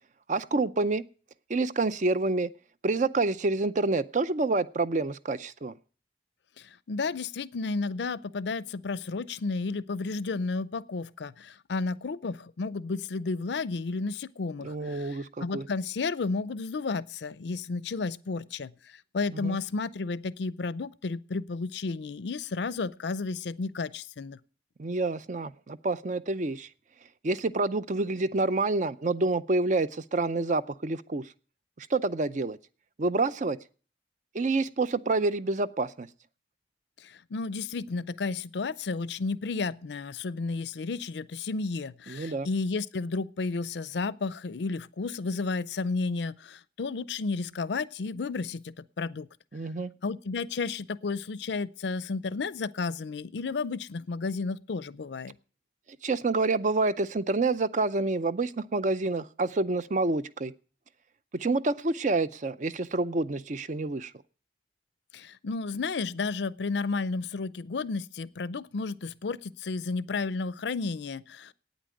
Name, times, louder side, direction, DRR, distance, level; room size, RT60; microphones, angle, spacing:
voice 1, 0.3-1.0 1.5-2.5 2.8-5.7 14.6-15.7 19.3-19.6 24.8-26.7 27.2-31.2 31.8-32.6 33.0-33.6 34.3-36.1 42.1-42.5 49.5-49.9 56.0-60.5 61.3-64.1, right 3 dB, 45° right, 0.6 m, -28 dB
voice 2, 6.6-24.4 37.0-49.3 50.0-55.3 65.1-71.5, left 4 dB, 70° left, 0.5 m, -32 dB
9.2 x 8.7 x 9.1 m
head